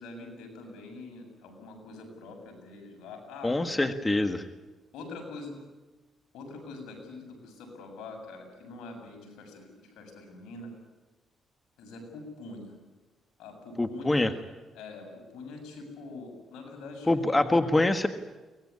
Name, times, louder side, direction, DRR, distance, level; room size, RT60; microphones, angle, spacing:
voice 1, 0.0-3.5 3.8-3.9 4.9-5.6 6.3-10.7 11.8-12.8 13.4-14.3 14.7-17.5, left 3 dB, 85° left, 3 dB, 7.5 m, -44 dB
voice 2, 3.4-4.4 13.8-14.3 17.1-18.1, left 2 dB, 15° left, 9 dB, 1.6 m, -25 dB
23.5 x 19.0 x 9.8 m, 1.2 s
cardioid pair, 90°, 0 cm